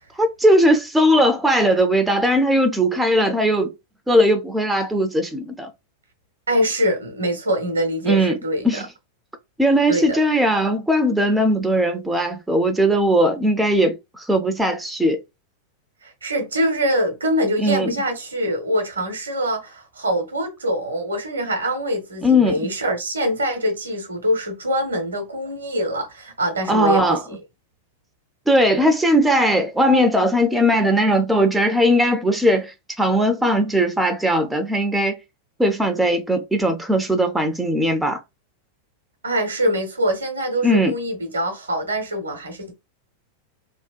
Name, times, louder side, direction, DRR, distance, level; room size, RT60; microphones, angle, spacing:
voice 1, 0.2-3.7 4.1-5.7 8.1-8.4 8.6-8.9 9.6-15.2 17.6-17.9 22.2-22.7 26.7-27.2 28.5-35.2 35.6-38.2 40.6-40.9, equal, 5° right, 0.4 m, -19 dB
voice 2, 6.5-8.8 9.9-10.2 16.0-27.4 39.2-42.7, equal, 75° right, 0.7 m, -24 dB
2.7 x 2.1 x 2.3 m
figure-of-eight pair, 90°, 0 cm